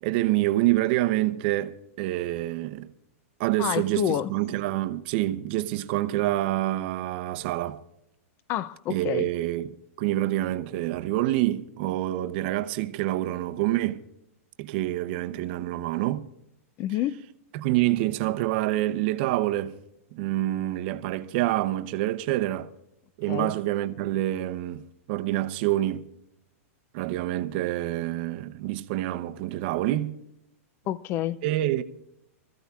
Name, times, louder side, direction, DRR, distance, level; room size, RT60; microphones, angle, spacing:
voice 1, 0.0-2.9 3.4-7.8 8.9-9.7 10.0-14.0 14.6-16.3 17.5-19.7 20.1-22.7 23.2-24.8 25.1-26.1 26.9-30.2 31.4-31.8, right 15 dB, 45° right, 0.7 m, -27 dB
voice 2, 3.6-4.3 8.5-9.3 16.8-17.3 23.3-23.5 30.9-31.4, left 12 dB, 30° left, 0.5 m, -28 dB
26.0 x 14.5 x 2.4 m
supercardioid pair, 150°, 8 cm